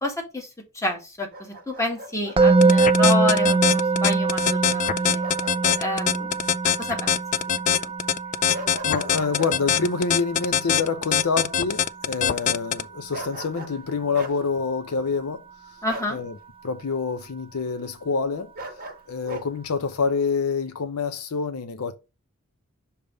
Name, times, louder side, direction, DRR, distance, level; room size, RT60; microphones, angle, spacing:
voice 1, 0.0-5.2 5.8-6.4 6.8-7.9 15.8-16.2, left 2 dB, 15° left, 1.9 m, -29 dB
Bark, 1.3-2.4 5.2-5.8 6.2-6.3 8.5-9.6 13.1-13.8 14.1-14.4 15.9-16.2 18.5-19.5, right 1 dB, 45° right, 1.3 m, -37 dB
Musical instrument, 2.4-13.5, right 4 dB, 25° right, 0.5 m, -24 dB
sound 1, 2.6-12.8, left 9 dB, 35° left, 0.3 m, -22 dB
voice 2, 8.8-15.4 16.1-16.3 16.6-18.5 19.1-21.9, left 4 dB, 80° left, 0.6 m, -27 dB
6.6 x 3.5 x 5.1 m
head